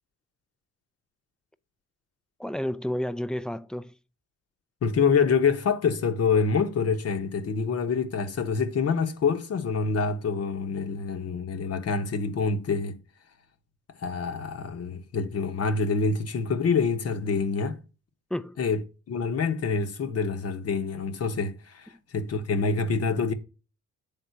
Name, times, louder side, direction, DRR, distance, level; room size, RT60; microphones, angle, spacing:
voice 1, 2.4-4.0 18.3-18.6, equal, 5° left, 0.4 m, -31 dB
voice 2, 4.8-13.0 14.0-17.8 18.6-18.8 19.1-23.3, left 5 dB, 55° left, 1.0 m, -26 dB
8.2 x 3.6 x 5.6 m
cardioid pair, 90°, 30 cm